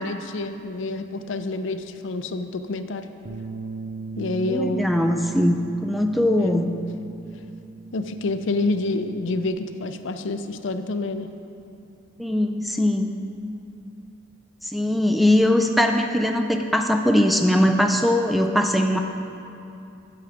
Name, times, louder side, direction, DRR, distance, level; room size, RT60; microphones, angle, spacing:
voice 1, 0.0-3.1 4.2-4.9 6.4-6.6 7.9-11.3, left 2 dB, 65° left, 9 dB, 0.5 m, -28 dB
Bass guitar, 3.2-9.5, right 3 dB, 50° right, 0.5 m, -38 dB
voice 2, 4.5-6.7 12.2-13.2 14.6-19.0, left 1 dB, ahead, 4 dB, 0.3 m, -21 dB
9.2 x 7.8 x 5.0 m, 2.6 s
head